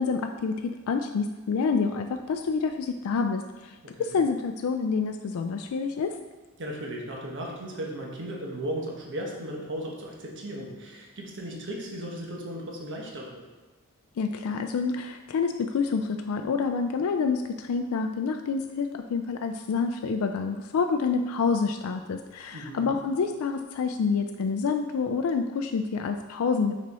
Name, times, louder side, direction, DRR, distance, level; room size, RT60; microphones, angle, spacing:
voice 1, 0.0-6.1 14.2-26.7, left 5 dB, 75° left, 6 dB, 0.3 m, -28 dB
voice 2, 3.8-4.2 6.6-13.4 22.5-22.9, right 1 dB, 60° right, -1 dB, 1.2 m, -36 dB
6.1 x 4.3 x 4.2 m, 1.2 s
head